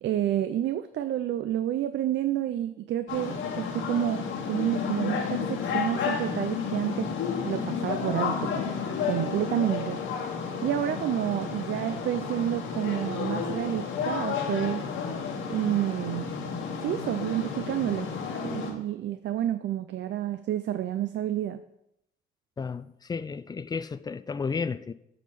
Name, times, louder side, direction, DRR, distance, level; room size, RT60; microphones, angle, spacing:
voice 1, 0.0-7.1 7.4-8.7 9.0-10.0 10.6-14.9 15.5-16.4 16.8-18.1 18.4-21.6, right 11 dB, 65° right, 0.5 m, -29 dB
sound 1, 3.1-18.7, left 6 dB, 85° left, 1.5 m, -32 dB
voice 2, 22.6-24.9, left 5 dB, 20° left, 0.4 m, -32 dB
9.3 x 3.8 x 6.6 m
cardioid pair, 90°, 20 cm